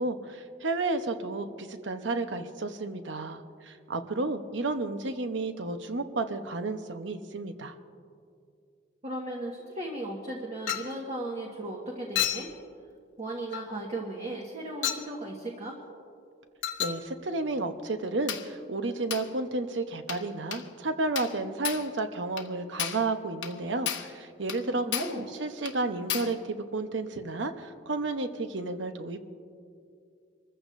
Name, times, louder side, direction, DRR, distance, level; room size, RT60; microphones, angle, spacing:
voice 1, 0.0-7.8 16.8-29.2, right 3 dB, 70° right, 8 dB, 0.9 m, -32 dB
voice 2, 9.0-12.5 13.2-15.8 24.7-25.2, right 1 dB, 35° right, -2 dB, 1.5 m, -36 dB
Chink clink, 10.7-11.0 12.2-12.5 13.5-13.7 14.8-15.1 16.6-17.0 18.3-18.5 19.1-19.3 20.1-20.3 20.5-20.7 21.2-21.4 21.6-21.9 22.4-22.5 22.8-23.1 23.4-23.6 23.9-24.1 24.5-24.6 24.9-25.2 25.7-25.8 26.1-26.4, left 10 dB, 80° left, 1.0 m, -32 dB
26.0 x 14.5 x 2.6 m, 2.4 s
head